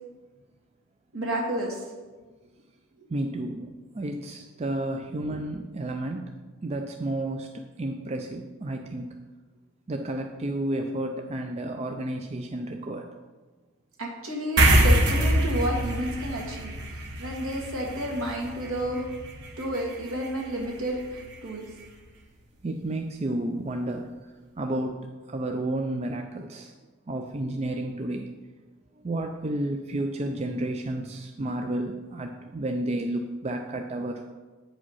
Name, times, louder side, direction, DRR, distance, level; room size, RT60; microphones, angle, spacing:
voice 1, 1.1-1.8 14.0-16.7 17.2-19.1 19.6-21.7, equal, 70° right, -1 dB, 2.0 m, -31 dB
voice 2, 3.1-3.7 3.9-6.3 6.6-9.1 9.9-13.1 22.6-24.1 24.6-26.7 27.1-28.3 29.0-34.3, right 1 dB, 30° right, 4 dB, 0.4 m, -31 dB
sound 1, 14.6-21.4, right 1 dB, 50° right, 1.2 m, -26 dB
8.6 x 5.1 x 5.6 m, 1.3 s
head